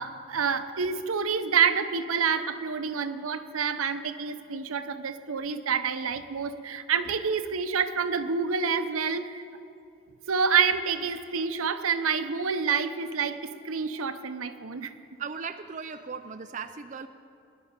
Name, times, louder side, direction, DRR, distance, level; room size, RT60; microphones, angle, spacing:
voice 1, 0.0-9.4 10.3-14.9, right 6 dB, 85° right, 10 dB, 0.7 m, -28 dB
voice 2, 15.2-17.1, right 6 dB, 35° right, 9 dB, 0.4 m, -37 dB
19.5 x 11.0 x 5.1 m, 2.6 s
head